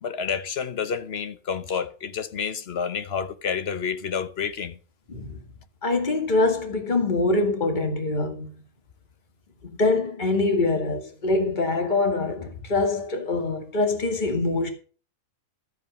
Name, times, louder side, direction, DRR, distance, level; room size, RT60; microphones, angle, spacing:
voice 1, 0.0-4.8, left 6 dB, 50° left, 1.1 m, -29 dB
voice 2, 5.8-8.5 9.8-14.7, left 2 dB, 35° left, 2.2 m, -24 dB
13.0 x 8.0 x 5.6 m
omnidirectional pair, 1.4 m